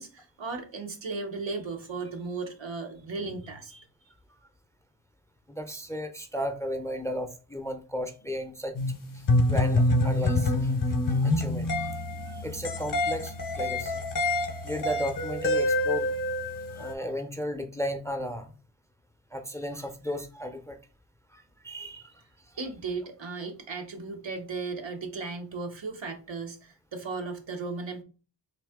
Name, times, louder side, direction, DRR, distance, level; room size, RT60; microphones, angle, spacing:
voice 1, 0.0-3.8 22.6-28.0, right 4 dB, 80° right, 0.9 m, -36 dB
voice 2, 5.5-8.8 9.1-10.7 11.1-12.0 12.2-14.0 14.6-16.1 16.7-18.5 19.3-20.8 21.3-22.1, equal, 5° left, 0.4 m, -35 dB
sound 1, 8.7-16.9, left 2 dB, 45° left, 0.6 m, -26 dB
4.0 x 2.7 x 3.5 m
wide cardioid pair, 90°, 44 cm